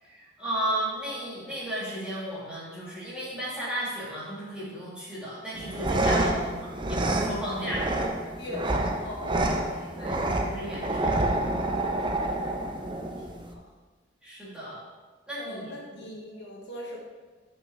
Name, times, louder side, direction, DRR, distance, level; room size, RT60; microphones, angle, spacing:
voice 1, 0.0-7.8 10.0-11.2 14.2-14.8 15.3-16.0, right 1 dB, 5° right, -9 dB, 2.1 m, -34 dB
sound 1, 5.5-13.5, right 1 dB, 25° right, 0.5 m, -28 dB
voice 2, 6.1-6.5 7.5-7.8 8.4-10.3 12.0-13.6 15.4-17.0, left 1 dB, 65° left, -2 dB, 1.2 m, -40 dB
5.7 x 5.5 x 4.7 m, 1.3 s
head